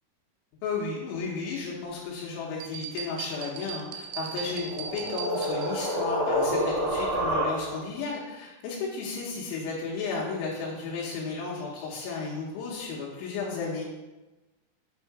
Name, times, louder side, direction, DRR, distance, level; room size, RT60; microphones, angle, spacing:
voice 1, 0.6-13.9, left 4 dB, 85° left, -5 dB, 3.4 m, -33 dB
sound 1, 2.6-6.0, right 8 dB, 90° right, 3.0 m, -39 dB
sound 2, 4.2-8.0, equal, 65° right, 0.7 m, -29 dB
7.1 x 3.7 x 4.7 m, 1.1 s
omnidirectional pair, 5.3 m